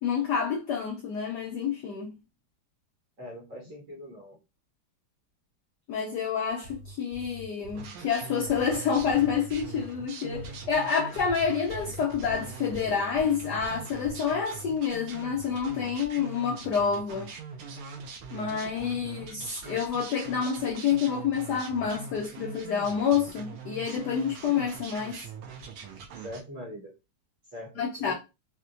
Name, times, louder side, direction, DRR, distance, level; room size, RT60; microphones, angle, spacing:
voice 1, 0.0-2.1 5.9-17.3 18.3-25.3 27.8-28.1, left 7 dB, 75° left, 0.9 m, -28 dB
voice 2, 3.2-4.4 26.2-26.9 27.5-28.1, left 1 dB, 50° right, 1.1 m, -42 dB
sound 1, 6.5-7.9 8.5-9.9 10.3-10.7 11.2-13.3 13.6-14.2, equal, 5° left, 0.4 m, -44 dB
sound 2, 7.7-26.4, right 6 dB, 80° right, 1.5 m, -43 dB
4.3 x 2.1 x 2.5 m
omnidirectional pair, 2.3 m